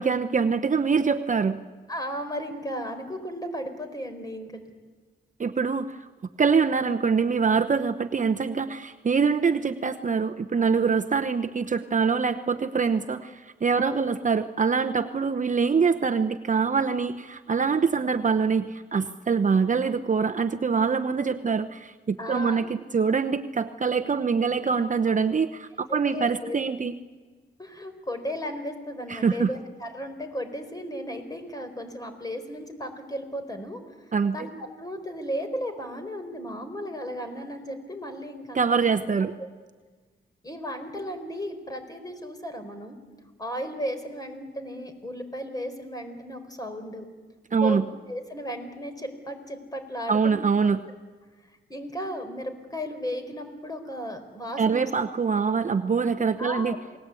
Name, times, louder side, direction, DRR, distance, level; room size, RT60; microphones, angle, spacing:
voice 1, 0.0-1.6 5.4-6.0 6.4-26.9 29.1-29.5 34.1-34.4 38.5-39.3 47.5-47.8 50.1-50.8 54.6-56.7, right 5 dB, 40° right, 7 dB, 0.9 m, -24 dB
voice 2, 1.9-4.6 13.8-14.0 22.2-22.7 25.9-26.6 27.6-33.8 34.3-38.8 40.4-43.0 43.4-47.0 47.6-50.4 51.4-54.9 56.4-56.8, equal, 20° left, 7 dB, 4.3 m, -35 dB
28.5 x 19.5 x 8.5 m, 1.4 s
cardioid pair, 100°, 20 cm